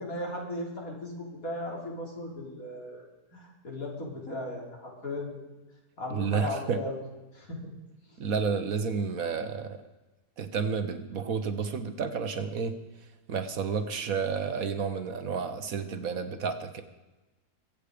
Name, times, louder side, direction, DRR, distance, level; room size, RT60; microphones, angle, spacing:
voice 1, 0.0-3.0 3.3-5.4 6.0-7.0 7.3-7.6, left 1 dB, 60° left, -1 dB, 3.7 m, -36 dB
voice 2, 6.1-6.8 8.2-9.8 10.4-12.7 13.3-16.8, right 5 dB, 60° right, 9 dB, 1.3 m, -31 dB
22.5 x 8.7 x 5.0 m, 1.1 s
omnidirectional pair, 1.7 m